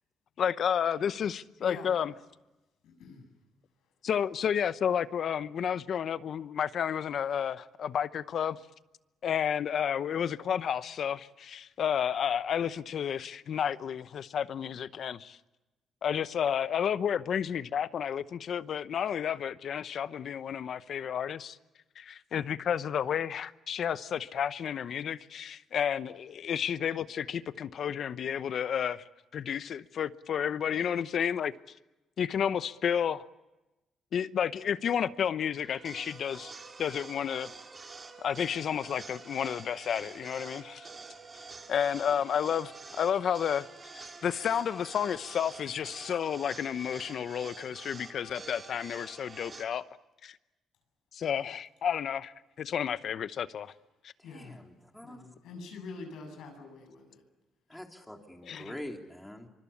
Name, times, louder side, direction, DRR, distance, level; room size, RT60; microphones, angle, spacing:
voice 1, 0.4-2.1 4.0-8.6 9.2-15.4 16.0-21.6 22.0-29.0 29.3-31.5 32.2-33.2 34.1-36.5 36.8-37.5 38.2-40.9 41.7-43.6 43.9-49.9 50.2-50.4 51.1-53.7 54.0-54.1 58.5-58.7, left 8 dB, 60° left, 0.8 m, -31 dB
voice 2, 1.6-1.9 2.8-3.3 54.2-54.6 55.0-57.2 58.5-58.7, left 4 dB, 85° left, 7.6 m, -45 dB
sound 1, 35.6-49.6, right 4 dB, 35° right, 3.1 m, -47 dB
voice 3, 54.2-55.3 57.7-59.5, left 1 dB, 5° left, 3.4 m, -45 dB
24.5 x 24.0 x 8.6 m
cardioid pair, 90°, 0 cm